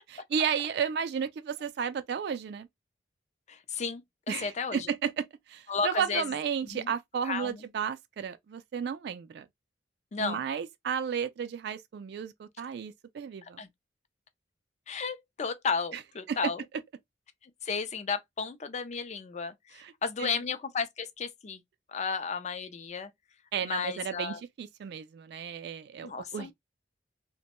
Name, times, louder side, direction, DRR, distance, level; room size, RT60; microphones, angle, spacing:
voice 1, 0.1-2.7 4.3-9.5 10.2-13.6 16.3-16.5 19.7-19.9 20.2-20.4 23.5-26.5, right 7 dB, 60° right, 0.3 m, -33 dB
voice 2, 3.5-4.9 5.7-6.2 6.7-6.9 7.2-7.6 10.1-10.4 13.4-13.7 14.9-16.6 17.4-21.6 21.9-23.1 23.6-24.4 26.0-26.5, left 5 dB, 40° left, 0.4 m, -33 dB
2.9 x 2.1 x 2.9 m
head